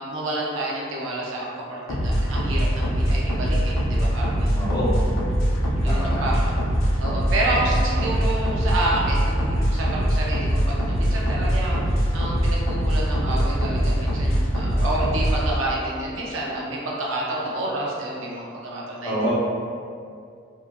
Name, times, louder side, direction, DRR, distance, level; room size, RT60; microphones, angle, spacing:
voice 1, 0.0-4.7 5.8-6.6 7.0-19.3, right 2 dB, 75° right, -4 dB, 0.6 m, -29 dB
sound 1, 1.9-15.5, equal, 80° left, 0.5 m, -22 dB
voice 2, 4.5-4.9 5.9-6.3 19.0-19.3, equal, 20° left, -8 dB, 0.5 m, -26 dB
2.9 x 2.4 x 2.3 m, 2.3 s
head